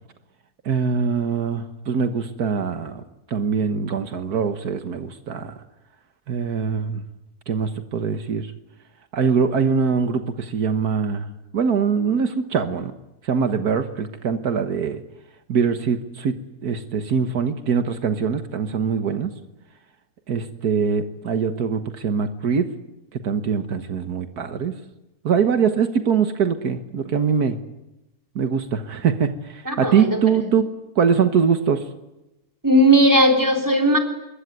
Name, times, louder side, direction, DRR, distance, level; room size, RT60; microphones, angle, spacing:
voice 1, 0.7-3.0 3.3-5.6 6.3-7.0 7.5-8.5 9.1-11.3 11.5-12.9 13.2-15.0 15.5-16.4 16.6-19.3 20.3-22.7 23.1-24.7 25.2-27.6 28.4-30.7 31.0-31.8, right 6 dB, 75° right, 9 dB, 1.9 m, -22 dB
voice 2, 29.7-30.2 32.6-34.0, right 1 dB, 10° right, 4 dB, 3.7 m, -17 dB
25.5 x 22.0 x 9.5 m, 0.94 s
omnidirectional pair, 1.6 m